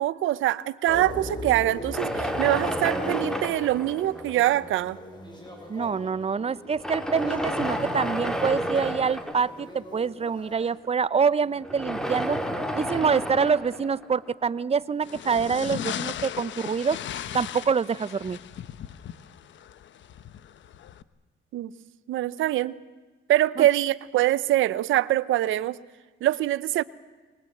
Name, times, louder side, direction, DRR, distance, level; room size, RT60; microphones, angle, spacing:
voice 1, 0.0-5.0 21.5-21.7 22.1-22.7 23.3-25.8 26.2-26.8, right 14 dB, 80° right, 0.8 m, -24 dB
sound 1, 0.9-10.7, left 1 dB, 20° left, 7.0 m, -39 dB
sound 2, 1.9-4.6 5.5-5.6 6.6-9.7 11.6-14.6, equal, 5° left, 3.0 m, -31 dB
voice 2, 5.7-12.4 12.7-17.0 17.3-18.4 23.6-23.7, right 6 dB, 30° right, 0.7 m, -26 dB
sound 3, 15.0-21.0, left 10 dB, 70° left, 1.1 m, -37 dB
25.0 x 22.0 x 8.0 m
cardioid pair, 90°, 20 cm